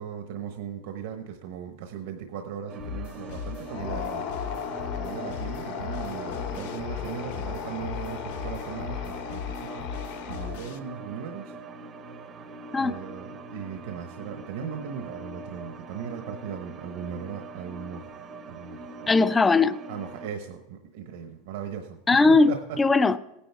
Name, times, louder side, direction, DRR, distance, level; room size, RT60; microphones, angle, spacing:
voice 1, 0.0-4.2 5.0-9.9 10.3-11.5 12.7-18.1 18.5-19.2 19.9-22.8, right 8 dB, 70° right, 1.1 m, -38 dB
sound 1, 2.7-20.3, right 2 dB, 25° right, 0.7 m, -42 dB
sound 2, 2.8-10.8, left 8 dB, 80° left, 1.1 m, -38 dB
sound 3, 3.6-10.8, left 8 dB, 55° left, 1.1 m, -37 dB
voice 2, 19.1-19.8 22.1-23.2, left 3 dB, 10° left, 0.4 m, -19 dB
17.0 x 10.0 x 3.5 m
supercardioid pair, 170°, 0 cm